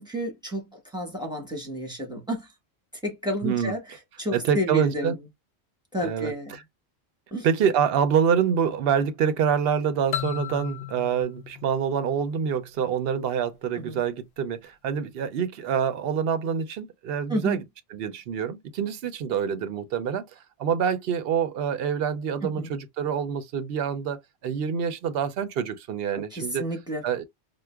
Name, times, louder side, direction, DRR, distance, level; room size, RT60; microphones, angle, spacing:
voice 1, 0.0-2.5 3.0-5.2 5.9-6.6 7.3-7.5 13.8-14.0 17.3-17.6 22.4-22.7 26.1-27.0, equal, 5° right, 1.2 m, -31 dB
voice 2, 3.4-3.7 4.3-5.1 6.0-6.3 7.4-17.6 17.9-26.6 27.0-27.2, right 7 dB, 65° right, 0.7 m, -26 dB
sound 1, 10.1-12.8, left 12 dB, 85° left, 0.9 m, -35 dB
4.6 x 2.1 x 2.2 m
omnidirectional pair, 1.1 m